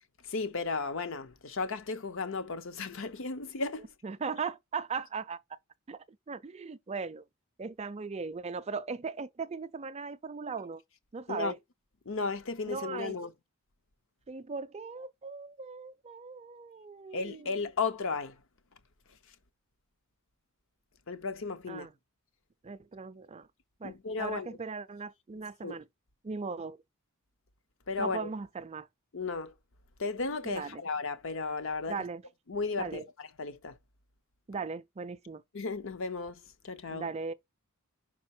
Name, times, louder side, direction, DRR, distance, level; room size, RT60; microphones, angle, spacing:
voice 1, 0.3-3.9 11.3-11.5 12.1-13.3 17.1-18.3 21.1-21.9 23.8-24.5 25.6-25.8 27.9-28.3 29.1-29.5 30.0-32.0 32.5-33.0 33.4-33.7 35.5-36.4 36.6-37.1, left 4 dB, 60° left, 0.7 m, -34 dB
voice 2, 4.0-5.4 5.9-6.0 6.3-7.2 7.6-10.8 11.1-11.6 12.7-13.2 14.3-17.6 21.7-21.9 22.6-23.5 23.8-25.9 26.2-26.8 28.0-28.9 30.4-30.8 31.9-32.2 32.8-33.1 34.5-35.4 36.9-37.3, right 5 dB, 30° right, 0.4 m, -38 dB
5.3 x 4.3 x 4.3 m
head